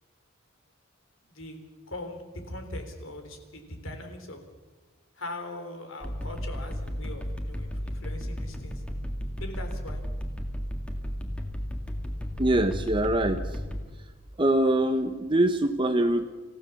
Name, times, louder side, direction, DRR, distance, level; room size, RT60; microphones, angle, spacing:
voice 1, 1.3-1.6 1.9-4.4 5.2-8.8 9.4-10.0, left 1 dB, 70° left, 6 dB, 3.7 m, -40 dB
sound 1, 6.0-13.8, equal, 5° left, 1.9 m, -34 dB
voice 2, 12.4-13.6 14.4-16.3, right 1 dB, 25° right, 7 dB, 0.9 m, -24 dB
27.5 x 15.5 x 7.1 m, 1.3 s
head